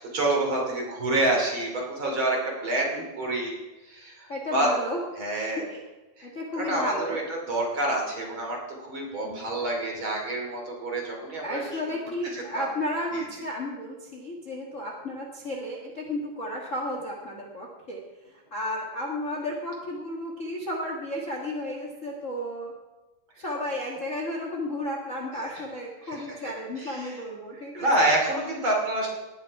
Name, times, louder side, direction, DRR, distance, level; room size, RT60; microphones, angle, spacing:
voice 1, 0.0-3.6 3.8-4.7 5.2-5.7 6.2-11.9 12.2-12.7 13.1-13.2 23.4-23.5 25.3-25.6 26.0-27.2 27.5-29.1, right 2 dB, 40° right, 0 dB, 3.5 m, -28 dB
voice 2, 4.3-5.0 5.7-5.8 6.2-7.2 9.2-9.5 11.4-18.0 18.5-22.7 23.4-28.1, left 1 dB, 30° left, -1 dB, 1.5 m, -33 dB
18.5 x 9.7 x 4.7 m, 1.1 s
omnidirectional pair, 3.7 m